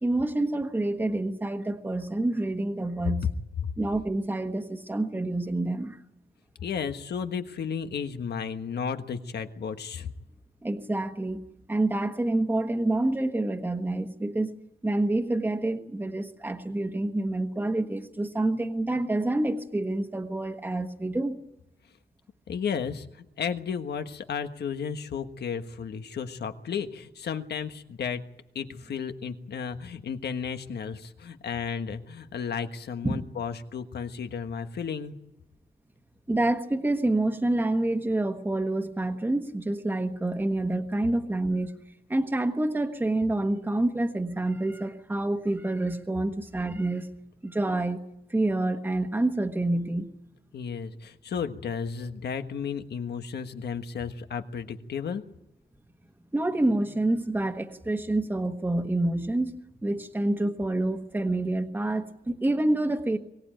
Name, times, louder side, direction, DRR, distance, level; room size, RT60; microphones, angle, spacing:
voice 1, 0.0-3.3 3.8-6.0 10.6-14.5 14.8-21.4 33.0-33.2 36.3-41.8 42.1-47.2 47.4-48.0 48.3-50.1 56.3-59.5 59.8-63.2, right 2 dB, 10° right, 4 dB, 1.3 m, -27 dB
voice 2, 6.6-10.1 22.5-28.2 28.5-35.1 50.5-55.2, left 6 dB, 90° left, 8 dB, 1.4 m, -33 dB
24.0 x 18.0 x 9.1 m, 0.90 s
wide cardioid pair, 140°, 17 cm